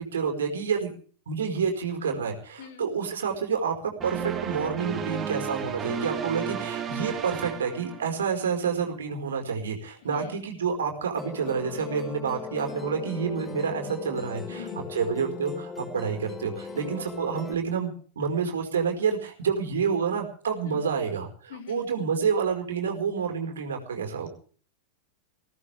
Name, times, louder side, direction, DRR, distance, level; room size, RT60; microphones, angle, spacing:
voice 1, 0.1-0.9 1.3-3.7 4.0-24.3, right 6 dB, 65° right, 3 dB, 5.1 m, -28 dB
voice 2, 2.6-2.9 10.0-10.4 14.5-14.9 16.7-17.0 20.7-20.8 21.5-21.9, left 7 dB, 55° left, 4 dB, 5.5 m, -43 dB
sound 1, 4.0-8.5, right 7 dB, 25° right, 2.5 m, -33 dB
Musical instrument, 11.2-17.6, left 5 dB, 15° left, 1.7 m, -39 dB
22.0 x 17.0 x 3.6 m, 0.43 s
figure-of-eight pair, 90°, 0 cm